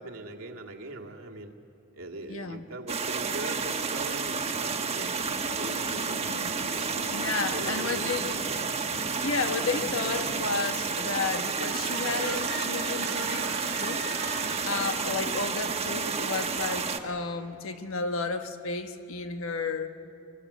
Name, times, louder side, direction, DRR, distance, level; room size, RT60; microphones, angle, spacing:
voice 1, 0.0-1.5 1.9-7.0 7.5-8.6, right 2 dB, 85° right, 1 dB, 2.0 m, -42 dB
voice 2, 2.3-2.6 7.1-8.3 9.2-14.1 14.6-19.9, left 4 dB, 80° left, 7 dB, 1.4 m, -32 dB
sound 1, 2.9-17.0, right 5 dB, 30° right, 1.3 m, -31 dB
sound 2, 5.3-10.6, left 1 dB, 65° left, 1.6 m, -44 dB
sound 3, 8.0-8.7 11.6-15.5, right 3 dB, 55° right, 1.4 m, -39 dB
24.0 x 24.0 x 8.3 m, 2.9 s
head